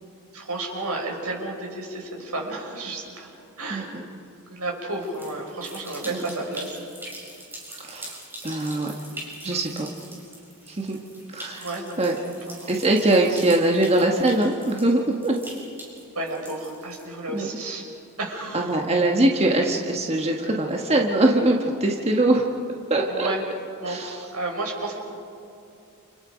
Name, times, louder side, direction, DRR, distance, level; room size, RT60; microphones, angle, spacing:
voice 1, 0.3-3.9 4.5-6.9 11.5-12.0 12.5-12.7 13.2-13.4 16.1-17.8 18.2-18.7 23.0-23.5 23.8-25.0, right 2 dB, 85° right, 0 dB, 5.9 m, -32 dB
voice 2, 3.7-4.0 6.0-6.4 7.8-8.1 8.4-9.0 9.4-9.9 10.7-11.0 11.3-11.6 12.0-12.2 12.7-15.4 17.3-17.5 18.5-22.4 22.9-23.3 23.9-24.2, right 1 dB, 30° right, 1 dB, 1.6 m, -22 dB
sound 1, 4.9-17.4, right 1 dB, 10° right, 6.6 m, -42 dB
29.5 x 29.0 x 5.2 m, 2.7 s
head